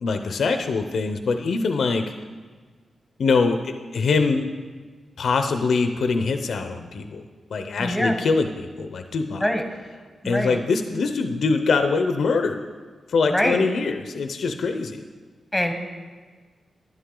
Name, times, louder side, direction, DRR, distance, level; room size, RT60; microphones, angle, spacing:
voice 1, 0.0-2.1 3.2-4.5 5.2-7.2 7.5-9.4 10.2-12.6 13.1-15.0, left 4 dB, 75° left, 7 dB, 0.6 m, -23 dB
voice 2, 7.8-8.1 9.4-9.6 10.2-10.6 13.3-13.6 15.5-15.7, equal, ahead, 5 dB, 1.1 m, -23 dB
11.5 x 10.5 x 3.8 m, 1.5 s
wide cardioid pair, 110°, 0 cm